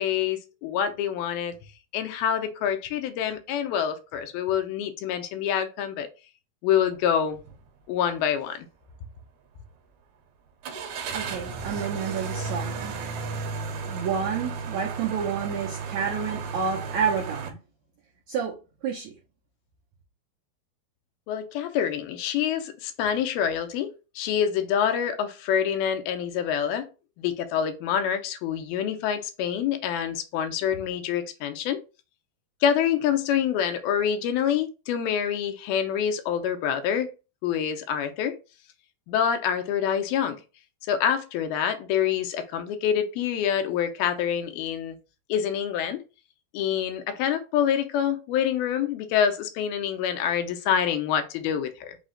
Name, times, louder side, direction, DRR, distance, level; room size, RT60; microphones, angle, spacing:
voice 1, 0.0-1.6 1.9-6.1 6.6-7.4 7.9-8.7 21.3-26.9 27.2-31.8 32.6-37.1 37.4-38.4 39.1-40.4 40.9-45.0 45.3-46.0 46.5-52.0, left 8 dB, 85° left, 2.4 m, -26 dB
sound 1, 7.4-7.6 8.0-8.1 10.6-17.5, right 5 dB, 75° right, 1.7 m, -34 dB
voice 2, 11.1-12.9 13.9-17.6 18.3-18.5 18.8-19.1, right 6 dB, 90° right, 1.6 m, -29 dB
5.8 x 2.1 x 3.8 m
omnidirectional pair, 4.2 m